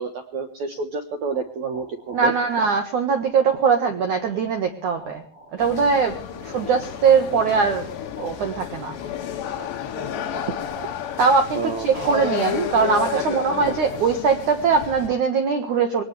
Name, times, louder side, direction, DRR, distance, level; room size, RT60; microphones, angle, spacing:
voice 1, 0.0-2.3 11.6-11.9 12.8-12.9 13.1-13.4, right 4 dB, 90° right, 6 dB, 1.6 m, -29 dB
sound 1, 1.3-15.2, right 1 dB, 30° right, 6.2 m, -46 dB
voice 2, 2.1-5.2 5.5-7.9 8.2-9.0 11.2-16.0, right 5 dB, 65° right, 6 dB, 2.0 m, -21 dB
sound 2, 5.6-15.1, left 8 dB, 70° left, 4.0 m, -31 dB
22.0 x 19.0 x 3.3 m, 0.39 s
omnidirectional pair, 5.4 m